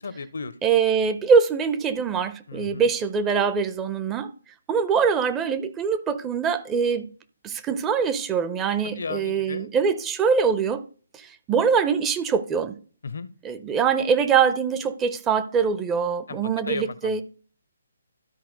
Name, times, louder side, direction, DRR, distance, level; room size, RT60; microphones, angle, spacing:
voice 1, 0.0-0.5 2.5-2.9 8.9-9.7 13.0-13.3 16.3-16.4 16.7-17.2, left 4 dB, 65° left, 0.6 m, -34 dB
voice 2, 0.6-4.3 4.7-7.1 7.4-10.8 11.1-12.8 13.4-17.2, right 6 dB, 15° right, 0.6 m, -23 dB
12.5 x 4.3 x 3.9 m
figure-of-eight pair, 140°, 0 cm